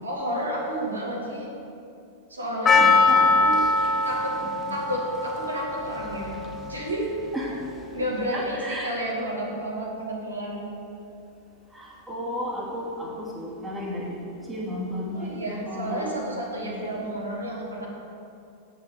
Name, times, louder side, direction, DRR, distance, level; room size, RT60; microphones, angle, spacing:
voice 1, 0.0-1.5 2.3-2.9 3.2-3.6 4.0-4.4 4.7-6.4 6.7-7.1 7.9-10.7 15.1-17.8, right 1 dB, 80° right, -4 dB, 2.5 m, -31 dB
Percussion, 2.7-7.6, left 3 dB, 25° left, 0.8 m, -23 dB
voice 2, 2.8-3.3 7.3-7.6 8.3-8.9 11.7-14.2 14.5-16.1 16.6-17.1, equal, 10° right, -4 dB, 2.6 m, -33 dB
9.3 x 7.1 x 7.9 m, 2.6 s
figure-of-eight pair, 90°, 0 cm